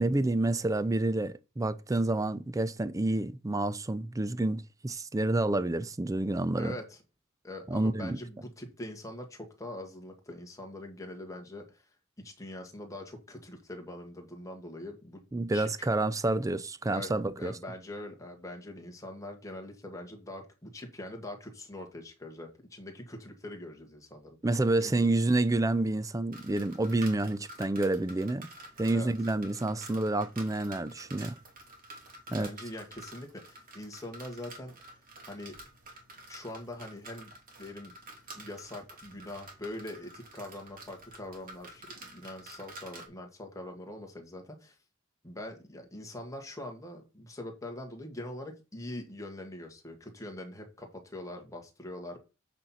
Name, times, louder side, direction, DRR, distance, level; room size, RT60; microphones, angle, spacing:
voice 1, 0.0-6.7 7.7-8.2 15.3-17.5 24.4-28.5 28.8-31.4 32.3-32.5, right 2 dB, 15° right, 0.4 m, -29 dB
voice 2, 6.6-7.0 7.4-11.9 12.2-15.2 15.5-15.9 16.9-24.4 24.8-25.2 28.9-29.1 32.3-35.0 35.3-35.5 36.3-37.3 37.6-37.9 38.3-44.8 45.2-52.2, left 1 dB, 15° left, 1.8 m, -43 dB
sound 1, 26.3-43.1, right 2 dB, 45° right, 2.4 m, -49 dB
8.1 x 4.4 x 5.6 m
head